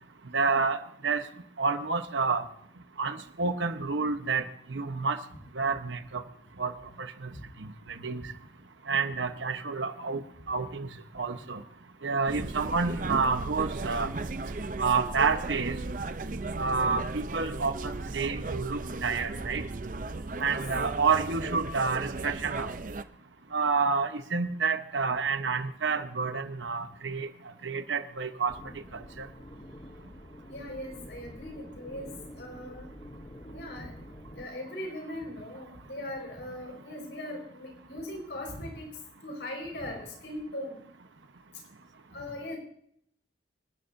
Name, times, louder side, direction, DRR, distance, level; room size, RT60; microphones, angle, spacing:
voice 1, 0.3-1.2 1.6-2.4 3.0-5.2 5.5-6.2 6.6-6.7 7.0-7.3 8.0-8.2 8.9-10.2 10.5-10.9 11.1-11.6 12.0-14.1 14.8-15.8 16.6-19.6 20.4-22.7 23.5-27.3 27.6-28.5 28.9-29.3, right 4 dB, 85° right, 8 dB, 1.0 m, -29 dB
sound 1, 12.3-23.0, right 3 dB, 45° right, 0.6 m, -36 dB
sound 2, 28.5-34.5, equal, 25° left, 0.8 m, -47 dB
voice 2, 30.5-32.1 32.3-32.9 33.5-33.9 34.4-38.9 39.2-40.8 42.1-42.6, left 1 dB, 70° left, 1 dB, 5.1 m, -39 dB
26.0 x 11.5 x 2.7 m, 0.69 s
head